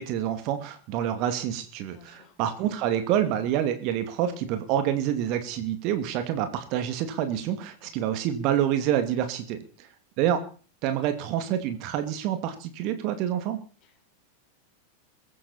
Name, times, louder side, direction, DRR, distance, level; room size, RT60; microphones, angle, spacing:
voice 1, 0.0-9.9 10.2-10.4 10.8-13.6, right 10 dB, 40° right, 8 dB, 2.5 m, -27 dB
voice 2, 1.9-2.3 7.8-8.1 13.8-14.1, left 6 dB, 35° left, 4 dB, 5.4 m, -56 dB
23.0 x 14.0 x 4.4 m, 0.40 s
figure-of-eight pair, 90°, 0 cm